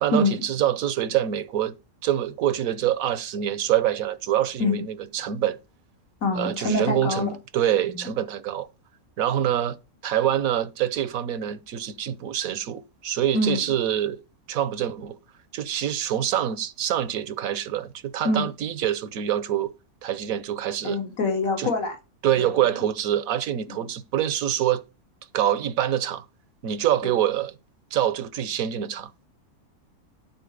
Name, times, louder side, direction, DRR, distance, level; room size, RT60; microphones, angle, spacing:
voice 1, 0.0-1.7 2.0-5.6 6.3-8.7 9.2-9.8 10.0-14.2 14.5-15.2 15.5-19.7 20.0-21.0 21.6-21.7 22.2-24.8 25.3-26.2 26.6-27.5 27.9-29.1, right 11 dB, 70° right, 1.3 m, -25 dB
voice 2, 4.6-5.1 6.2-7.3 13.3-13.6 18.2-18.4 20.8-22.0 22.4-22.5 23.7-23.8, left 2 dB, 65° left, 2.6 m, -25 dB
12.0 x 4.3 x 6.8 m
omnidirectional pair, 1.5 m